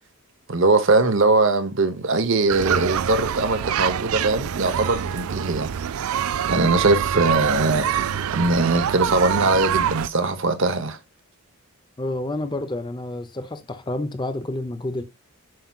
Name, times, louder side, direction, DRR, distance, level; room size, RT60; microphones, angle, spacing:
voice 1, 0.5-5.7 6.1-11.0, right 3 dB, 55° right, 0.8 m, -21 dB
sound 1, 2.5-10.1, right 9 dB, 75° right, 0.4 m, -25 dB
voice 2, 12.0-15.0, left 2 dB, 20° left, 0.6 m, -29 dB
7.7 x 5.7 x 2.3 m
head